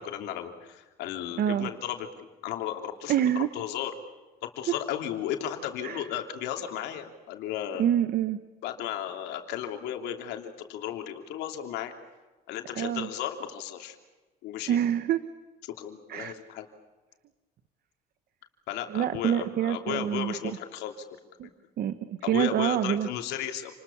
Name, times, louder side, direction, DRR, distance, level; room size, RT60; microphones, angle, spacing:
voice 1, 0.0-3.9 4.4-7.9 8.6-11.9 12.5-14.0 14.4-14.8 15.8-16.7 18.7-21.0 22.2-23.8, left 10 dB, 90° left, 5 dB, 3.1 m, -35 dB
voice 2, 1.4-1.7 3.1-3.5 5.8-6.0 7.8-8.4 12.8-13.1 14.7-15.2 16.1-16.3 18.9-20.6 21.4-21.5 21.8-23.1, right 10 dB, 65° right, 12 dB, 1.2 m, -26 dB
29.0 x 20.5 x 7.2 m, 1.2 s
cardioid pair, 110°, 17 cm